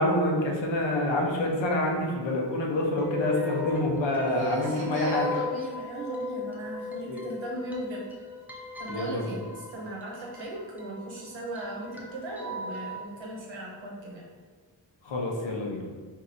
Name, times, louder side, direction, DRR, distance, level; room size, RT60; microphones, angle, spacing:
voice 1, 0.0-5.3 7.1-7.2 8.9-9.3 15.0-15.8, left 1 dB, 75° left, -1 dB, 0.8 m, -27 dB
sound 1, 3.0-13.0, left 3 dB, 5° right, 0.3 m, -38 dB
voice 2, 4.3-8.1 8.8-14.2, right 2 dB, 85° right, -3 dB, 1.0 m, -37 dB
4.5 x 2.6 x 2.6 m, 1.5 s
wide cardioid pair, 140°, 45 cm